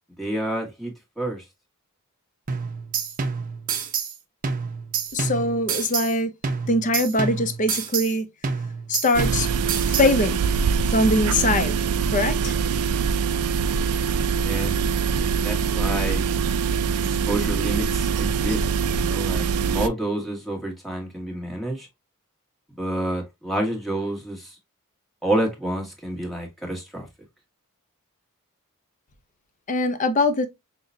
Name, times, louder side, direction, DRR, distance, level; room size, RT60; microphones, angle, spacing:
voice 1, 0.2-1.4 14.4-14.8 15.1-16.3 17.0-21.9 22.8-24.5 25.2-27.1, right 1 dB, ahead, 1.3 m, -29 dB
sound 1, 2.5-4.2 4.4-6.2 6.4-8.2 8.4-10.2, right 5 dB, 40° right, 0.6 m, -28 dB
voice 2, 5.1-6.3 6.7-8.3 8.9-9.5 9.9-10.4 10.9-11.8 12.1-12.6 29.7-30.5, left 2 dB, 35° left, 0.6 m, -22 dB
sound 2, 9.1-19.9, right 6 dB, 80° right, 0.4 m, -23 dB
5.5 x 2.2 x 2.6 m
head